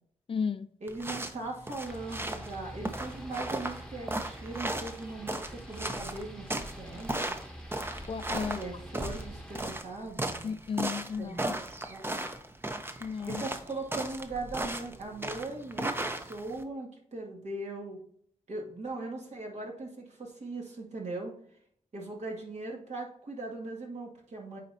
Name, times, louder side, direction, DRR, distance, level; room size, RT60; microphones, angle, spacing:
voice 1, 0.3-0.7 8.0-8.8 10.4-11.5 13.0-13.4, left 6 dB, 45° left, 0.4 m, -34 dB
voice 2, 0.8-7.3 8.5-10.5 11.2-11.5 11.9-12.2 13.3-18.0 18.5-21.3 21.9-24.6, right 2 dB, 65° right, 2.1 m, -39 dB
sound 1, 0.9-16.6, right 1 dB, 20° right, 0.7 m, -36 dB
sound 2, 1.8-9.7, equal, 5° left, 1.0 m, -46 dB
9.1 x 4.1 x 2.7 m
cardioid pair, 75°, 13 cm